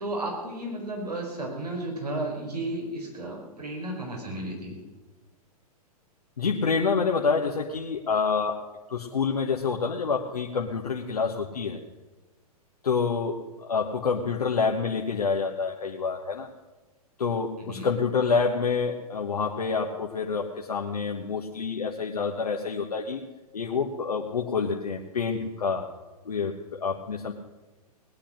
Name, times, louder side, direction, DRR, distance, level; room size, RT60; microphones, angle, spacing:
voice 1, 0.0-4.8 17.6-17.9, right 1 dB, 85° right, 0 dB, 4.9 m, -33 dB
voice 2, 6.4-8.6 8.9-11.8 12.8-16.5 17.2-23.2 23.5-25.9 26.2-27.3, left 5 dB, 80° left, 1 dB, 1.3 m, -27 dB
19.0 x 10.0 x 6.5 m, 1.2 s
figure-of-eight pair, 105°, 20 cm